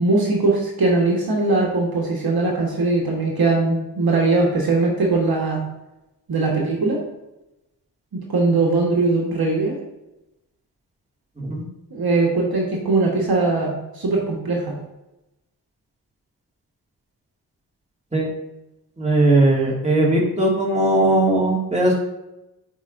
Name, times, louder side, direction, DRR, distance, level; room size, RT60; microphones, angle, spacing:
voice 1, 0.0-5.6 6.3-7.0 8.3-9.7 11.9-14.7, right 3 dB, 65° right, -1 dB, 1.4 m, -20 dB
voice 2, 19.0-21.9, right 1 dB, 15° right, -3 dB, 2.1 m, -18 dB
8.0 x 4.8 x 2.6 m, 0.94 s
cardioid pair, 45°, 40 cm